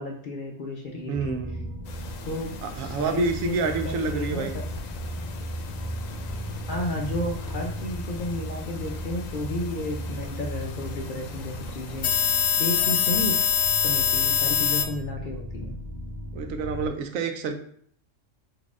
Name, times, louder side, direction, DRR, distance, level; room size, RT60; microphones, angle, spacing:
voice 1, 0.0-1.4 2.2-4.6 6.7-13.4 13.8-15.8, left 1 dB, 60° left, 1 dB, 0.5 m, -33 dB
sound 1, 1.1-16.9, right 1 dB, 50° right, 0.4 m, -36 dB
voice 2, 1.1-1.6 2.6-4.6 16.3-17.5, right 4 dB, 90° right, 6 dB, 1.0 m, -28 dB
sound 2, 1.9-14.9, left 8 dB, 80° left, 1.0 m, -29 dB
4.1 x 2.7 x 3.5 m, 0.62 s
omnidirectional pair, 1.3 m